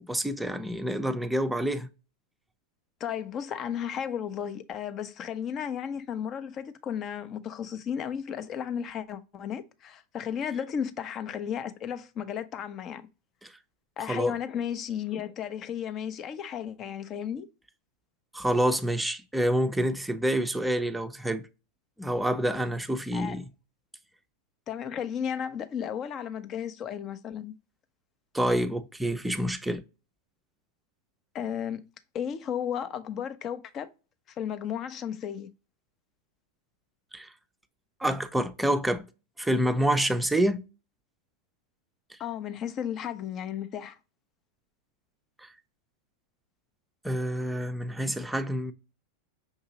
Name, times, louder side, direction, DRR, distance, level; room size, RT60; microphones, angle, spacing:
voice 1, 0.0-1.9 13.4-13.5 14.1-14.3 18.3-21.4 22.0-23.5 28.3-29.8 37.1-37.3 38.0-39.1 39.4-40.6 45.4-45.5 47.0-48.7, right 1 dB, 5° right, 0.5 m, -27 dB
voice 2, 3.0-13.0 14.0-17.5 23.1-23.4 24.7-27.5 31.3-31.8 32.1-33.9 34.4-35.5 42.2-44.0, left 8 dB, 40° left, 0.6 m, -34 dB
5.7 x 2.8 x 2.8 m
hypercardioid pair, 95°, 0 cm